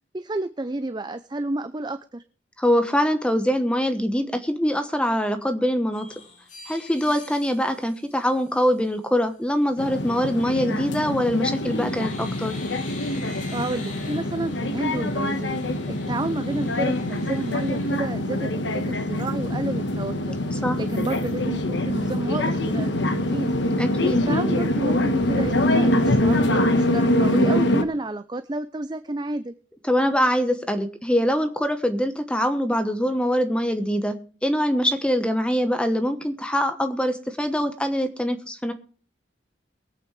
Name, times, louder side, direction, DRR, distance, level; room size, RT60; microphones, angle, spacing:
voice 1, 0.1-2.2 13.5-23.5 24.3-29.5, right 2 dB, 25° right, 11 dB, 0.5 m, -31 dB
voice 2, 2.6-6.1 6.7-12.6 20.5-20.8 23.8-24.3 29.8-34.2 34.4-38.7, equal, 5° left, 8 dB, 1.1 m, -23 dB
sound 1, 5.9-8.9 10.8-11.1 11.5-18.8 19.2-19.3 19.6-20.5 20.9-21.4, left 3 dB, 40° left, 3.3 m, -46 dB
sound 2, 9.8-27.8, left 1 dB, 75° left, 1.4 m, -24 dB
22.5 x 8.6 x 3.2 m, 0.42 s
head